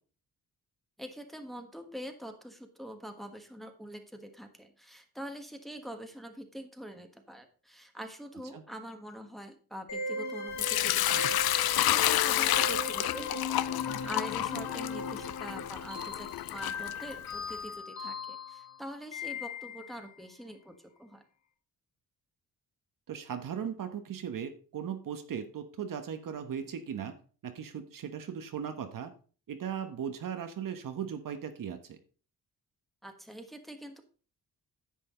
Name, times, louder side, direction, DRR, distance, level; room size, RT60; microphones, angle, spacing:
voice 1, 1.0-21.2 33.0-34.0, equal, ahead, 5 dB, 1.3 m, -45 dB
sound 1, 9.9-20.0, left 3 dB, 45° left, 1.9 m, -38 dB
Sink (filling or washing) / Liquid, 10.6-17.5, left 14 dB, 75° left, 0.5 m, -30 dB
voice 2, 23.1-27.1 27.4-29.1 29.5-32.0, right 8 dB, 60° right, 8 dB, 1.2 m, -38 dB
10.5 x 7.6 x 3.8 m, 0.39 s
cardioid pair, 115°, 37 cm